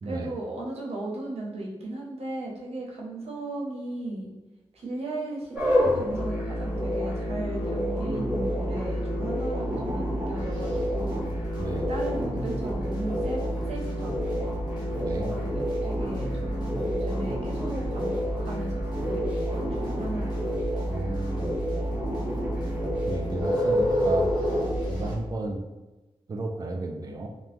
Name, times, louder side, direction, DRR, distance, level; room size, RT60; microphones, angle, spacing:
voice 1, 0.0-4.3 4.7-11.5 11.9-14.5 15.0-20.5, right 2 dB, 80° right, -3 dB, 0.7 m, -36 dB
sound 1, 5.5-25.2, equal, 15° right, 0.9 m, -28 dB
sound 2, 10.4-25.1, equal, 45° left, 0.8 m, -42 dB
voice 2, 11.6-11.9 15.0-15.3 20.9-21.5 23.1-24.3 24.9-25.7 26.3-27.3, right 2 dB, 35° right, 3 dB, 0.3 m, -33 dB
2.9 x 2.1 x 3.4 m, 1.1 s
wide cardioid pair, 125°, 10 cm